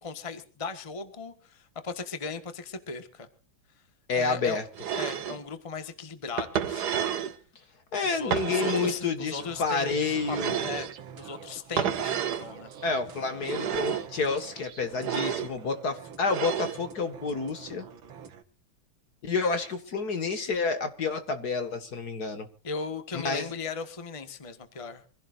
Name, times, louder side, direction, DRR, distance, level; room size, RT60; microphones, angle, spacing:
voice 1, 0.0-3.3 4.1-4.6 4.9-7.0 8.0-10.9 11.1-12.7 22.6-25.0, left 5 dB, 20° left, 8 dB, 1.4 m, -37 dB
voice 2, 4.1-4.6 7.9-10.6 12.8-17.9 19.2-22.5 23.1-23.5, left 4 dB, 55° left, 8 dB, 2.2 m, -29 dB
sound 1, 4.8-5.4 6.4-7.4 8.3-9.0 10.3-10.9 11.8-12.5 13.4-14.1 15.0-15.5 16.3-16.8, right 8 dB, 60° right, 1.5 m, -30 dB
sound 2, 9.4-18.4, right 7 dB, 80° right, 2.1 m, -46 dB
25.5 x 16.0 x 2.6 m, 0.37 s
omnidirectional pair, 2.1 m